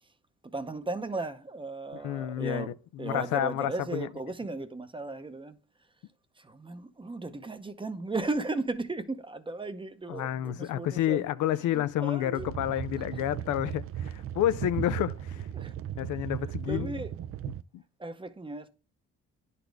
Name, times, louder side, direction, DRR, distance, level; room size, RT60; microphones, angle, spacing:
voice 1, 0.4-5.6 6.4-11.2 11.7-12.5 15.5-15.7 16.7-17.1 18.0-18.7, right 2 dB, 15° right, 0.7 m, -36 dB
voice 2, 2.0-2.7 3.0-4.1 10.1-15.5 16.0-16.9 17.7-17.8, left 12 dB, 80° left, 0.5 m, -30 dB
Lava loop, 12.4-17.6, right 10 dB, 50° right, 0.4 m, -36 dB
10.0 x 4.2 x 3.4 m
cardioid pair, 90°, 30 cm